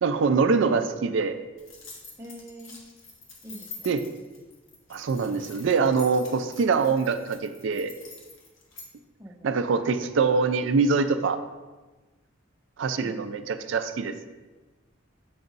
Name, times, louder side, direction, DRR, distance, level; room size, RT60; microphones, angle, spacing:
voice 1, 0.0-1.4 3.8-4.0 4.9-7.9 9.4-11.4 12.8-14.1, right 4 dB, 65° right, 9 dB, 0.4 m, -24 dB
sound 1, 1.6-8.9, left 4 dB, 65° left, 1.0 m, -46 dB
voice 2, 2.2-2.8 3.4-3.9 9.2-9.6 13.0-13.5, right 1 dB, 15° right, -1 dB, 0.6 m, -44 dB
6.9 x 2.5 x 5.3 m, 1.2 s
head